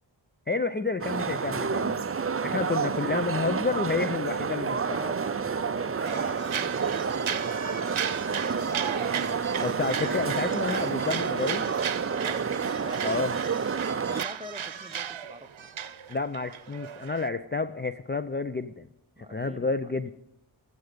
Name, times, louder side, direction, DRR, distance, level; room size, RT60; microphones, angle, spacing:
voice 1, 0.5-2.1 2.4-5.0 9.5-11.6 13.0-13.3 16.1-18.9 19.2-20.1, left 4 dB, 25° left, 11 dB, 0.5 m, -30 dB
sound 1, 1.0-14.2, right 5 dB, 30° right, 0.5 m, -29 dB
voice 2, 2.5-2.9 4.9-8.7 12.1-15.7 19.2-19.9, right 1 dB, 15° right, 7 dB, 1.0 m, -45 dB
sound 2, 6.0-17.3, right 8 dB, 90° right, 0.8 m, -36 dB
sound 3, 9.5-14.9 15.1-15.7 16.0-17.0 17.3-17.4, left 1 dB, 70° left, 4.9 m, -54 dB
16.0 x 14.0 x 5.2 m, 0.75 s
wide cardioid pair, 80°, 46 cm